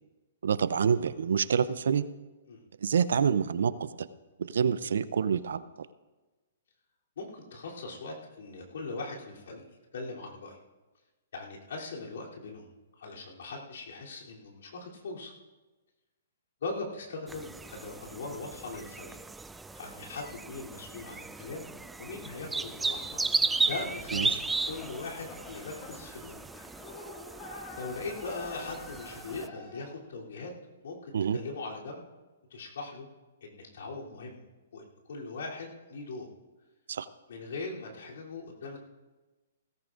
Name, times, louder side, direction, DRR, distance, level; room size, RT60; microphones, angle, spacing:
voice 1, 0.4-2.1 2.8-4.1 4.4-5.6 24.1-24.4 31.1-31.4 36.9-37.1, right 7 dB, 70° right, 15 dB, 0.5 m, -27 dB
voice 2, 7.2-9.7 9.9-10.6 11.3-12.7 13.0-15.3 16.6-19.2 19.7-21.7 22.0-23.2 23.6-26.4 27.7-30.5 30.8-32.1 32.5-33.1 33.4-34.4 34.7-36.3 37.3-38.8, left 3 dB, 65° left, -3 dB, 3.1 m, -40 dB
sound 1, 17.3-29.5, right 3 dB, 5° right, 0.3 m, -35 dB
sound 2, 24.6-29.9, left 2 dB, 35° left, 3.0 m, -47 dB
17.0 x 15.5 x 2.5 m, 1.2 s
hypercardioid pair, 130°, 0 cm